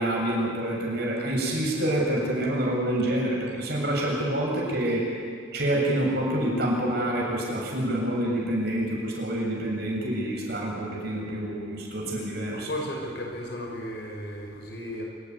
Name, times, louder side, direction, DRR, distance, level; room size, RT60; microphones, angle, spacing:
voice 1, 0.0-5.1 5.5-12.7, right 1 dB, 55° right, -2 dB, 7.1 m, -27 dB
voice 2, 12.5-15.0, equal, 55° left, 0 dB, 5.6 m, -34 dB
27.5 x 15.0 x 9.7 m, 2.1 s
head